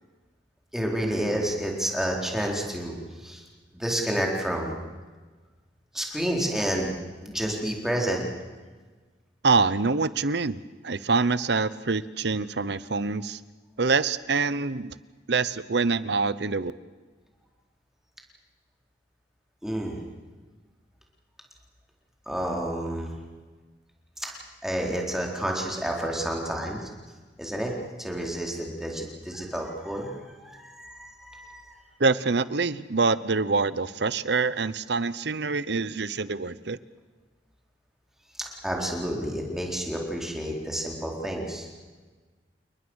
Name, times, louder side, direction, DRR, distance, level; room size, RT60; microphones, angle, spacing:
voice 1, 0.7-3.4 3.7-4.7 5.9-8.2 19.6-20.0 22.3-23.1 24.2-24.4 24.6-26.8 27.4-31.8 38.4-41.7, right 1 dB, ahead, -1 dB, 4.3 m, -30 dB
voice 2, 9.4-10.6 10.8-13.4 13.8-14.9 15.3-16.7 32.0-36.8, right 4 dB, 65° right, 16 dB, 0.9 m, -25 dB
29.5 x 20.0 x 6.5 m, 1.3 s
head